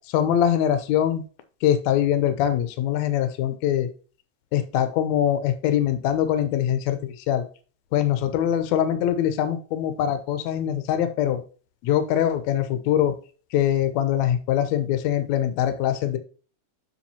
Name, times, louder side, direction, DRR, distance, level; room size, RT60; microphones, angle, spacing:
voice 1, 0.1-1.2 1.6-3.9 4.5-7.0 7.3-7.4 7.9-11.4 11.8-13.2 13.5-16.2, left 10 dB, 70° left, 9 dB, 2.1 m, -23 dB
7.3 x 7.1 x 2.8 m, 0.37 s
omnidirectional pair, 3.4 m